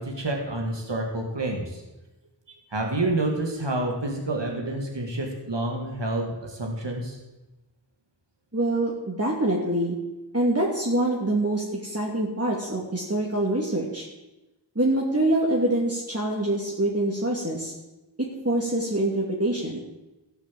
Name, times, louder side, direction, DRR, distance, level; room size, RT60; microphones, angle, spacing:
voice 1, 0.0-1.8 2.5-7.2, right 2 dB, 85° right, 0 dB, 2.3 m, -28 dB
voice 2, 8.5-10.0 10.3-14.1 14.8-17.7 18.2-19.8, right 1 dB, 35° right, -3 dB, 2.5 m, -25 dB
15.5 x 7.2 x 7.7 m, 1.0 s
wide cardioid pair, 40°, 42 cm